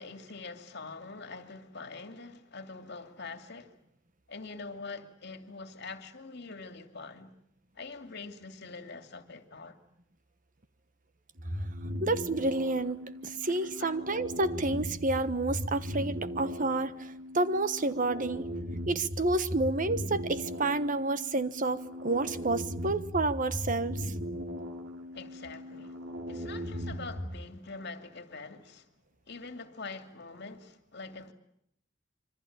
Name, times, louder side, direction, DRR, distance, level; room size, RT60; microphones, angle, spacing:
voice 1, 0.0-3.8 4.3-7.3 7.8-9.8 13.4-14.0 25.1-28.9 29.3-31.3, left 4 dB, 60° left, 2.6 m, -44 dB
sound 1, 11.4-27.4, equal, 80° right, 4.3 m, -38 dB
voice 2, 12.0-18.5 18.9-24.1, right 2 dB, 45° right, 1.3 m, -30 dB
26.5 x 25.0 x 8.8 m
head